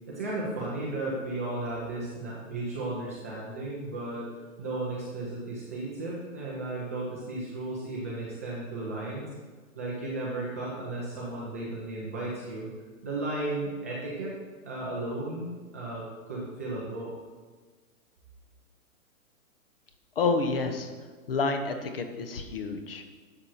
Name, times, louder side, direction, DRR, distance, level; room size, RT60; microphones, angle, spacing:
voice 1, 0.1-4.3 4.6-9.3 9.7-12.7 13.0-14.3 14.6-17.1, right 2 dB, 10° right, -6 dB, 0.6 m, -34 dB
voice 2, 20.2-20.9 21.3-23.0, left 4 dB, 40° left, 6 dB, 1.1 m, -29 dB
12.5 x 7.6 x 4.4 m, 1.4 s
hypercardioid pair, 170°, 43 cm